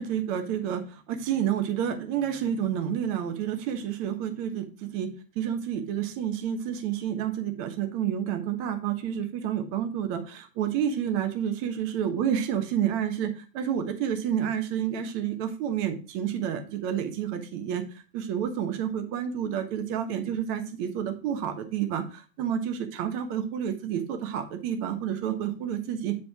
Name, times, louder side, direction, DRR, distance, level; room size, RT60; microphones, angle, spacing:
voice 1, 0.0-26.2, right 9 dB, 40° right, 7 dB, 1.2 m, -29 dB
7.7 x 5.2 x 3.5 m, 0.35 s
hypercardioid pair, 135°, 49 cm